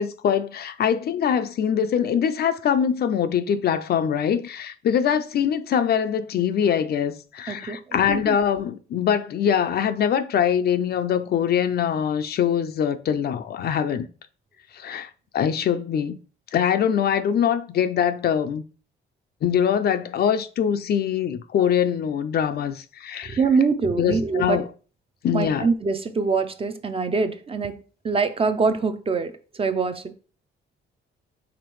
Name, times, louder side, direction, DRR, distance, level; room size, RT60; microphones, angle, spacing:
voice 1, 0.0-14.1 14.7-16.2 16.5-18.6 19.4-23.4 24.0-24.7 25.2-25.7, left 8 dB, 55° left, 0.4 m, -23 dB
voice 2, 7.5-8.4 23.3-24.6 25.3-27.8 28.0-30.1, right 4 dB, 30° right, 0.5 m, -24 dB
5.0 x 3.4 x 3.1 m
cardioid pair, 90°, 20 cm